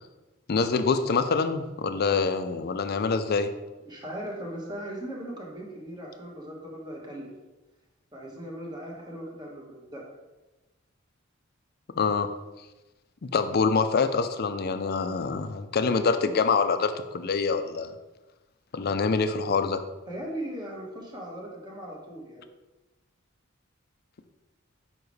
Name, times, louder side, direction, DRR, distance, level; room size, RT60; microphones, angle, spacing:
voice 1, 0.5-3.5 12.0-12.3 13.2-17.9 18.7-19.8, left 4 dB, 50° left, 10 dB, 0.5 m, -25 dB
voice 2, 3.8-7.3 8.1-10.0 20.1-22.4, right 1 dB, 20° right, -2 dB, 1.5 m, -38 dB
7.0 x 5.2 x 3.2 m, 1.1 s
head